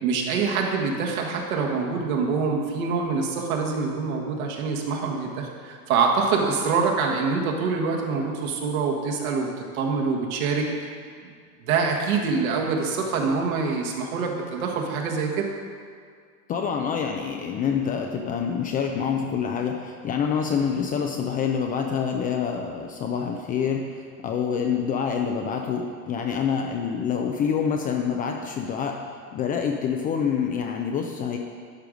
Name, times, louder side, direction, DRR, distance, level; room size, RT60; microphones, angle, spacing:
voice 1, 0.0-10.7 11.2-11.3 11.6-15.5, right 5 dB, 65° right, 0 dB, 1.6 m, -25 dB
voice 2, 16.5-29.0 29.3-31.4, left 7 dB, 20° left, 3 dB, 0.4 m, -26 dB
12.0 x 4.8 x 5.2 m, 2.1 s
hypercardioid pair, 110°, 45 cm